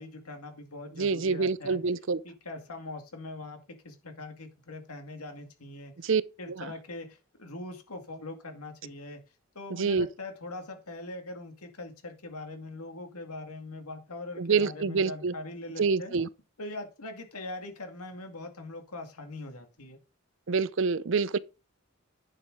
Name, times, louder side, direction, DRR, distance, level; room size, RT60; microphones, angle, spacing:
voice 1, 0.0-1.8 2.2-5.9 6.4-9.2 9.5-16.2 16.6-20.0, left 2 dB, 85° left, 2.2 m, -42 dB
voice 2, 1.0-2.2 6.0-6.2 6.5-6.7 9.7-10.1 14.4-15.3 15.8-16.3 20.5-21.4, right 5 dB, 55° right, 0.5 m, -26 dB
10.5 x 6.4 x 3.9 m
head